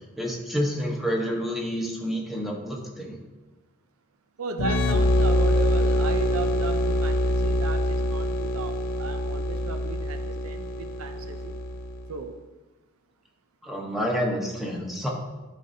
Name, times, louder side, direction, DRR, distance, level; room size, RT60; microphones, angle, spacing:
voice 1, 0.2-3.2 13.6-15.1, equal, ahead, -2 dB, 0.9 m, -29 dB
voice 2, 4.4-11.6 12.1-12.4, right 5 dB, 90° right, 8 dB, 0.5 m, -36 dB
sound 1, 4.6-12.1, left 1 dB, 70° left, 0.5 m, -25 dB
11.5 x 4.2 x 2.7 m, 1.2 s
head